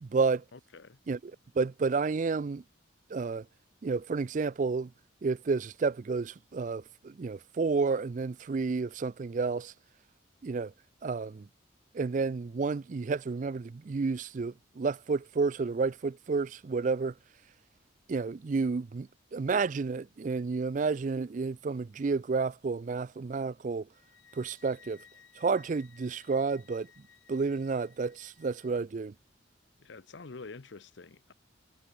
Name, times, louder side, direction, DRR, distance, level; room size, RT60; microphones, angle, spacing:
voice 1, 0.0-0.4 1.1-2.6 3.1-3.5 3.8-4.9 5.2-9.7 10.4-10.7 11.0-11.5 11.9-17.1 18.1-23.9 24.3-25.0 25.4-26.9 27.3-29.1, right 4 dB, 40° right, 0.4 m, -31 dB
voice 2, 0.5-1.0 29.8-31.3, left 3 dB, 65° left, 0.8 m, -47 dB
sound 1, 23.9-28.8, left 7 dB, 80° left, 4.3 m, -59 dB
head